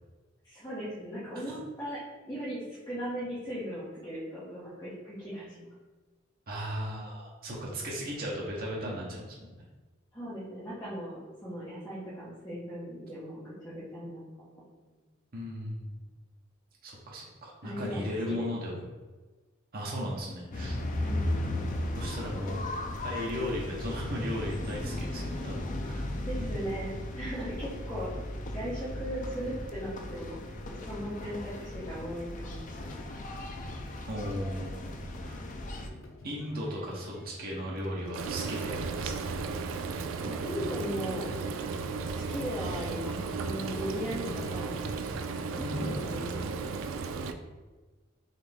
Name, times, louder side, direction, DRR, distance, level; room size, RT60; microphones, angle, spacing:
voice 1, 0.4-5.7 10.1-14.3 14.6-14.9 17.6-18.5 21.0-21.3 26.3-28.1 28.5-33.2 40.2-41.3 42.0-44.7 45.7-46.9, equal, 20° left, -10 dB, 1.1 m, -38 dB
voice 2, 6.5-9.3 15.3-15.9 16.8-18.8 19.7-20.8 21.9-22.6 23.0-26.1 26.4-26.5 34.1-35.4 36.2-39.2 45.5-46.0, equal, 50° right, -4 dB, 0.9 m, -36 dB
sound 1, 20.5-35.9, left 1 dB, 40° left, 0.4 m, -36 dB
sound 2, 32.4-46.4, left 1 dB, 85° left, 0.7 m, -49 dB
Frying (food), 38.1-47.3, right 4 dB, 80° right, 0.3 m, -35 dB
4.0 x 3.1 x 3.5 m, 1.3 s
head